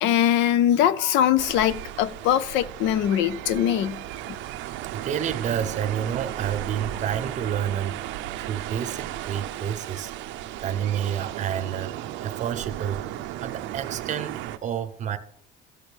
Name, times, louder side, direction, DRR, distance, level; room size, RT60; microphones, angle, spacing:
voice 1, 0.0-4.0, left 11 dB, 75° left, 0.6 m, -22 dB
sound 1, 1.4-14.6, right 13 dB, 75° right, 0.5 m, -35 dB
voice 2, 4.9-8.0 8.4-10.1 10.6-11.9 12.2-13.1 13.4-15.2, right 9 dB, 40° right, 0.7 m, -29 dB
15.0 x 6.2 x 3.4 m
cardioid pair, 140°, 19 cm